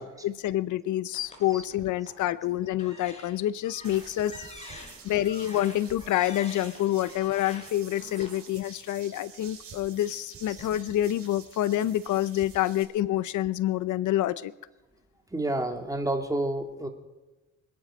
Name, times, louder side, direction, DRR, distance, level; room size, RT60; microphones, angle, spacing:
voice 1, 0.2-4.3 4.8-14.5, left 13 dB, 75° left, 17 dB, 0.7 m, -27 dB
sound 1, 1.1-2.2 2.7-8.3, left 2 dB, 20° left, 5.2 m, -47 dB
sound 2, 3.8-12.8, right 5 dB, 50° right, 5.1 m, -49 dB
voice 2, 15.3-16.9, right 1 dB, 10° right, 4 dB, 2.7 m, -30 dB
26.0 x 10.5 x 5.2 m, 1.1 s
cardioid pair, 90°, 30 cm